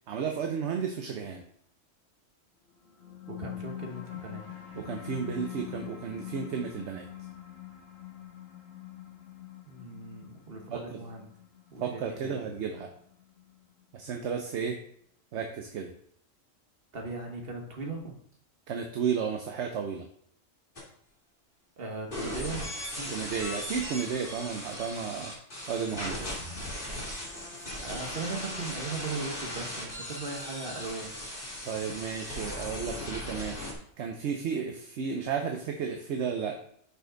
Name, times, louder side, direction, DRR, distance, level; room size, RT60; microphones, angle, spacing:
voice 1, 0.1-1.4 4.7-7.1 10.7-11.0 11.8-12.9 13.9-14.8 15.3-15.9 18.7-20.1 23.1-25.3 25.7-26.2 31.6-33.6 34.0-36.6, right 6 dB, 65° right, 3 dB, 1.0 m, -33 dB
sound 1, 2.9-13.8, left 11 dB, 60° left, 1.1 m, -44 dB
voice 2, 3.3-4.5 9.6-11.3 11.7-12.4 16.9-18.1 21.8-23.2 26.1-26.3 27.5-31.2, right 3 dB, 50° right, 2 dB, 1.5 m, -38 dB
sound 2, 20.8-20.9 22.1-33.7, left 1 dB, 40° left, 2.7 m, -38 dB
6.4 x 5.5 x 3.9 m, 0.65 s
omnidirectional pair, 1.3 m